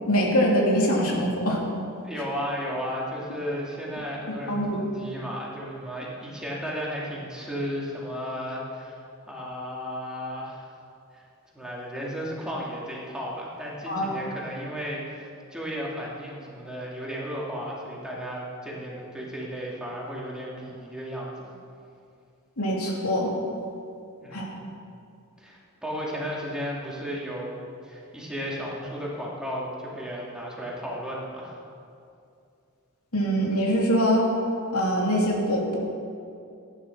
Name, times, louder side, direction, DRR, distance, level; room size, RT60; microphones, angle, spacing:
voice 1, 0.1-1.6 4.5-4.8 13.9-14.1 22.6-23.3 24.3-24.5 33.1-34.3 34.7-35.8, equal, 85° left, -2 dB, 2.9 m, -23 dB
voice 2, 2.0-10.7 11.1-11.2 11.5-21.3 24.2-24.6 25.4-31.6, equal, 5° right, -5 dB, 2.5 m, -34 dB
16.0 x 10.0 x 6.0 m, 2.5 s
head